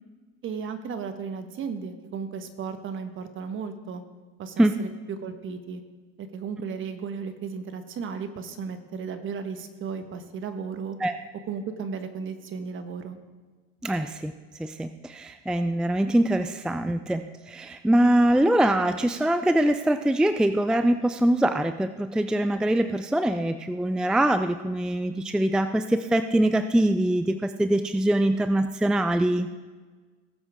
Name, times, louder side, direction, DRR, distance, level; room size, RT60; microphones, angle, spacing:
voice 1, 0.4-4.0 4.4-5.8 6.2-11.0 11.5-13.2, right 6 dB, 40° right, 8 dB, 1.4 m, -35 dB
voice 2, 13.8-14.3 14.6-29.5, right 1 dB, 5° right, 10 dB, 0.4 m, -23 dB
19.0 x 8.1 x 3.7 m, 1.4 s
supercardioid pair, 100°, 29 cm